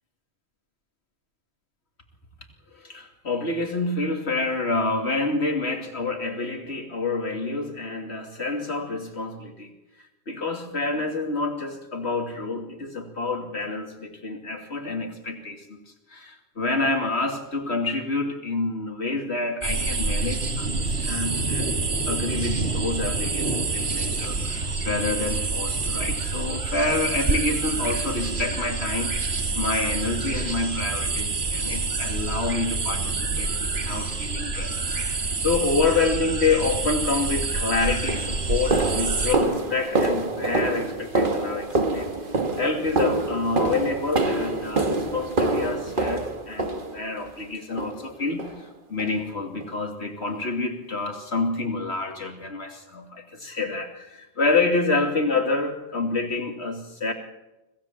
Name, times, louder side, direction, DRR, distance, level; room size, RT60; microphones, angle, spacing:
voice 1, 2.7-9.7 10.3-15.8 16.1-21.7 22.1-42.1 42.6-57.1, left 3 dB, 90° left, 4 dB, 3.0 m, -28 dB
sound 1, 19.6-39.4, right 3 dB, 75° right, 2.2 m, -27 dB
sound 2, 37.4-37.5 38.1-47.3 47.8-48.1 48.4-48.6 49.0-49.2 49.6-49.7 50.2-50.3, right 2 dB, 50° right, 1.9 m, -26 dB
25.5 x 16.5 x 7.6 m, 1.0 s
omnidirectional pair, 1.1 m